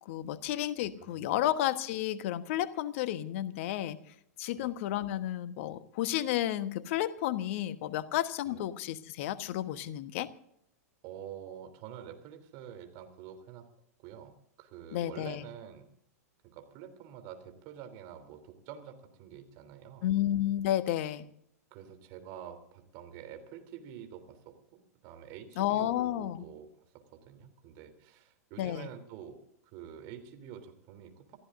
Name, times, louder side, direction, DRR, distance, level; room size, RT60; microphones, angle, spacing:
voice 1, 0.0-4.0 4.4-10.3 14.9-15.4 20.0-21.3 25.6-26.4 28.6-28.9, left 13 dB, 50° left, 12 dB, 1.3 m, -32 dB
voice 2, 1.0-1.4 4.5-4.7 8.4-8.6 11.0-13.7 14.0-15.9 16.4-20.1 21.7-29.4 29.7-31.4, right 9 dB, 45° right, 7 dB, 3.4 m, -47 dB
28.0 x 14.0 x 2.6 m, 0.71 s
figure-of-eight pair, 100°, 9 cm